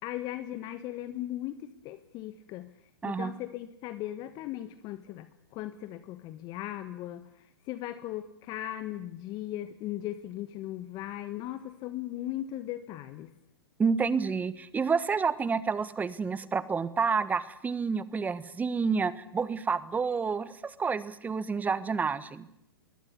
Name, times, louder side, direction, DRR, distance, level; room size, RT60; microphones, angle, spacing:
voice 1, 0.0-2.7 3.0-13.3, left 13 dB, 35° left, 12 dB, 1.4 m, -38 dB
voice 2, 13.8-22.5, right 5 dB, 15° right, 17 dB, 1.4 m, -29 dB
22.5 x 17.0 x 9.9 m, 0.79 s
hypercardioid pair, 115°, 12 cm